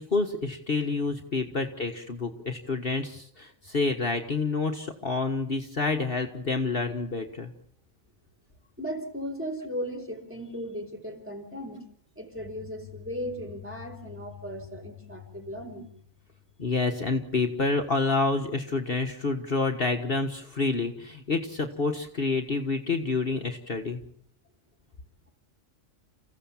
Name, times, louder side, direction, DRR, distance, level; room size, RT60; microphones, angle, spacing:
voice 1, 0.0-7.5 16.6-24.0, left 3 dB, 45° left, 5 dB, 1.7 m, -28 dB
voice 2, 8.8-11.8 12.1-15.9, equal, 10° right, 4 dB, 4.4 m, -36 dB
29.5 x 16.0 x 7.3 m, 0.64 s
omnidirectional pair, 1.4 m